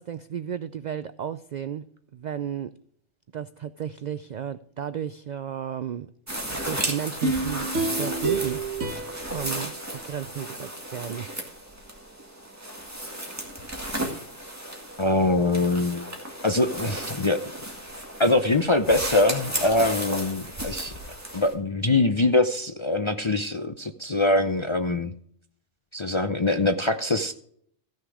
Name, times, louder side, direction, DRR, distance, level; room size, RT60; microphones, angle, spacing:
voice 1, 0.0-2.8 3.3-6.1 6.5-9.0 9.3-11.3, right 9 dB, 70° right, 0.4 m, -34 dB
sound 1, 6.3-21.5, right 1 dB, 15° right, 2.0 m, -34 dB
sound 2, 7.2-10.5 11.0-11.1, right 3 dB, 90° right, 2.1 m, -30 dB
voice 2, 15.0-16.1 16.4-17.4 18.2-20.9 21.3-25.1 25.9-27.3, left 2 dB, 40° left, 0.4 m, -23 dB
14.5 x 6.5 x 4.8 m
omnidirectional pair, 1.2 m